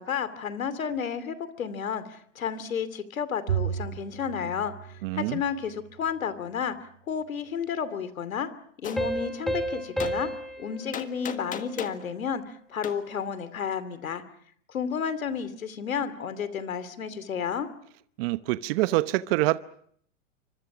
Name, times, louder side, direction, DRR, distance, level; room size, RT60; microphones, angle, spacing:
voice 1, 0.0-6.8 7.1-8.5 8.8-10.3 10.6-14.2 14.7-17.7, left 7 dB, 85° left, 2.8 m, -32 dB
Bowed string instrument, 3.5-6.0, right 10 dB, 75° right, 2.1 m, -34 dB
voice 2, 5.0-5.4 18.2-19.6, right 19 dB, 45° right, 1.0 m, -25 dB
Gunshot gunfire, 8.8-9.0 10.0-10.2 10.9-12.0 12.8-13.0, left 8 dB, 20° left, 1.6 m, -36 dB
sound 1, 9.0-12.3, right 1 dB, ahead, 2.7 m, -33 dB
29.5 x 25.0 x 6.1 m
hypercardioid pair, 125°, 40 cm